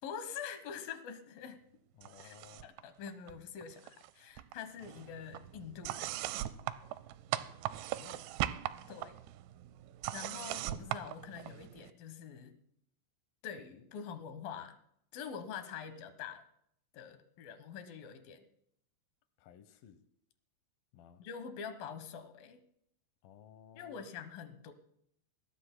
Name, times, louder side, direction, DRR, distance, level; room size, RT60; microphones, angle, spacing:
voice 1, 0.0-1.6 2.2-2.4 2.6-6.2 8.9-9.2 10.1-12.5 13.4-14.8 15.1-16.4 16.9-18.5 21.2-22.6 23.8-24.7, left 7 dB, 65° left, 9 dB, 2.4 m, -45 dB
voice 2, 1.9-2.7 7.9-8.3 19.4-20.0 20.9-21.2 23.2-24.1, left 9 dB, 85° left, 9 dB, 2.0 m, -57 dB
sound 1, 2.0-2.8 3.1-4.1 4.4-11.9, right 14 dB, 85° right, 2.4 m, -40 dB
22.5 x 18.0 x 2.2 m, 0.70 s
omnidirectional pair, 5.5 m